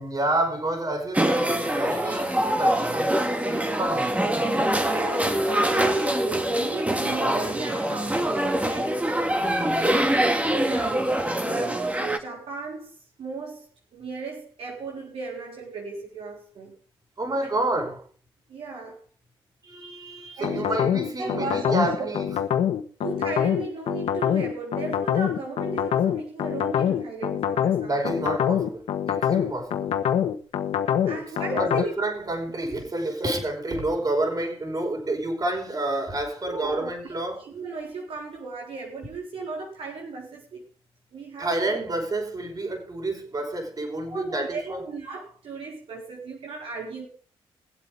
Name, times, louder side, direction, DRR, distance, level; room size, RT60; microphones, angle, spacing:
voice 1, 0.0-4.2 9.4-10.2 17.2-18.0 19.6-22.4 27.8-29.9 31.5-37.5 41.4-44.8, right 2 dB, 40° right, 5.4 m, -29 dB
sound 1, 1.1-12.2, right 1 dB, 15° right, 2.1 m, -24 dB
voice 2, 4.8-9.0 10.6-11.2 11.4-16.7 17.4-17.5 18.5-19.0 20.4-20.9 21.2-22.1 23.0-28.1 31.0-31.9 36.4-40.6 41.1-41.8 44.0-47.1, right 4 dB, 70° right, 4.0 m, -36 dB
sound 2, 20.4-31.8, left 9 dB, 75° left, 1.4 m, -24 dB
22.5 x 8.0 x 3.6 m
cardioid pair, 65°, 10 cm